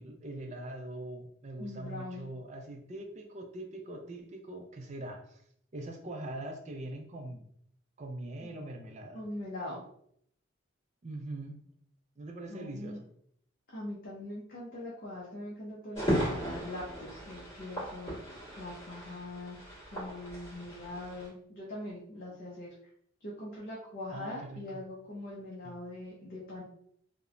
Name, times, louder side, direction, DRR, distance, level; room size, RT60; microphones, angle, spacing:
voice 1, 0.0-5.4 5.7-7.5 8.0-9.2 11.0-11.6 12.2-13.0 24.1-24.8 25.6-25.7, right 1 dB, 35° right, 3 dB, 0.4 m, -42 dB
voice 2, 1.6-2.2 8.4-8.5 9.1-9.8 12.5-13.0 13.7-19.6 19.9-22.7 23.2-26.6, left 1 dB, 50° left, -5 dB, 0.6 m, -42 dB
sound 1, 15.9-21.3, equal, 30° left, 1.5 m, -36 dB
2.9 x 2.1 x 2.4 m, 0.67 s
head